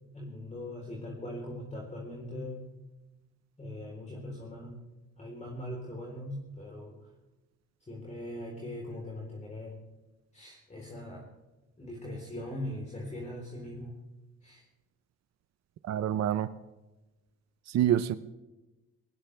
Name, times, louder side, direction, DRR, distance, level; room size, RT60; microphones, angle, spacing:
voice 1, 0.1-2.7 3.6-4.8 5.2-7.0 7.9-9.8 10.3-11.3 11.8-14.0 14.4-14.6, left 1 dB, 25° left, -2 dB, 3.8 m, -40 dB
voice 2, 15.8-16.5 17.7-18.2, right 11 dB, 60° right, 13 dB, 0.7 m, -26 dB
19.0 x 19.0 x 3.4 m, 1.1 s
cardioid pair, 90°, 30 cm